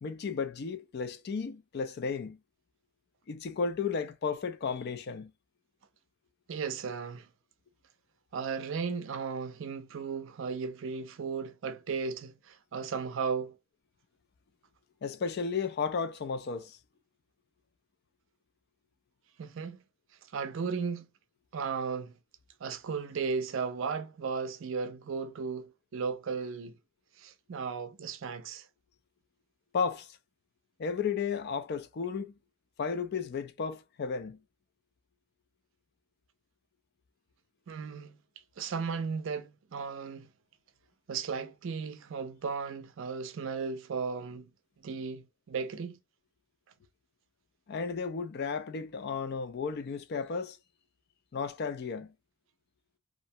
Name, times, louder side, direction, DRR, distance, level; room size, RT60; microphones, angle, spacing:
voice 1, 0.0-2.4 3.3-5.3 15.0-16.8 29.7-30.1 30.8-32.3 32.8-34.4 47.7-50.6 51.3-52.1, left 5 dB, 50° left, 0.4 m, -33 dB
voice 2, 6.5-7.3 8.3-13.5 19.4-19.8 20.3-21.1 21.5-22.1 22.6-26.8 27.2-28.7 37.7-38.2 38.6-40.3 41.1-44.5 44.8-46.0, right 5 dB, 65° right, 0.4 m, -35 dB
2.5 x 2.0 x 2.7 m
head